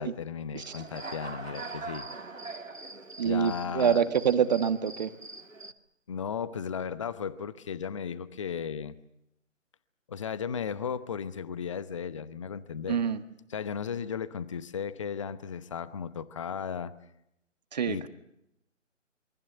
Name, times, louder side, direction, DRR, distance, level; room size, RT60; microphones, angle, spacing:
voice 1, 0.0-2.1 3.2-4.1 6.1-9.0 10.1-13.0 13.5-16.9 17.9-18.1, left 7 dB, 25° left, 0.9 m, -35 dB
Human voice / Cricket, 0.5-5.7, right 3 dB, 85° right, 2.3 m, -42 dB
voice 2, 3.2-5.1 12.9-13.2 17.7-18.1, right 8 dB, 35° right, 1.6 m, -26 dB
27.0 x 24.5 x 6.9 m
figure-of-eight pair, 150°, 38 cm